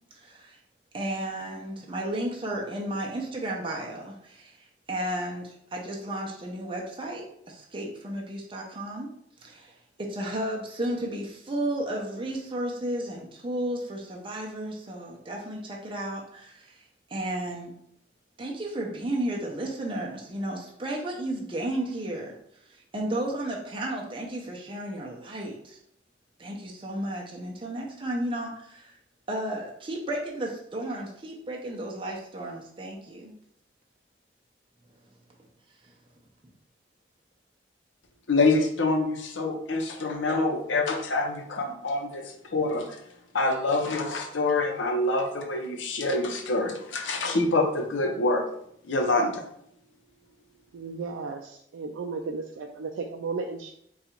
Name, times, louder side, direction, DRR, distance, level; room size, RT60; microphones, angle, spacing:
voice 1, 0.1-0.6 0.9-4.6 4.9-9.1 9.4-16.8 17.1-17.7 18.4-22.4 22.7-25.8 26.4-29.0 29.3-33.3 35.8-35.9, right 1 dB, 25° right, -1 dB, 0.6 m, -33 dB
voice 2, 38.3-42.2 42.5-43.0 43.3-48.5 48.9-49.4, left 2 dB, 75° left, 3 dB, 0.7 m, -26 dB
voice 3, 50.7-53.7, right 4 dB, 85° right, 2 dB, 0.4 m, -34 dB
3.9 x 2.3 x 4.4 m, 0.71 s
head